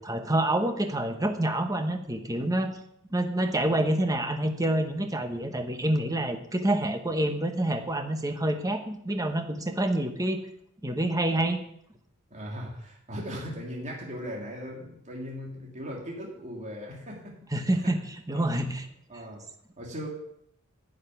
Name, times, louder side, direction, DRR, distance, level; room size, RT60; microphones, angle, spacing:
voice 1, 0.0-2.7 3.1-10.4 10.8-11.6 17.5-18.0 18.3-18.9, right 1 dB, 15° right, 6 dB, 1.2 m, -27 dB
voice 2, 12.3-17.9 18.3-18.5 19.1-19.4 19.8-20.1, equal, 35° right, -2 dB, 2.9 m, -38 dB
10.5 x 6.6 x 9.3 m, 0.71 s
head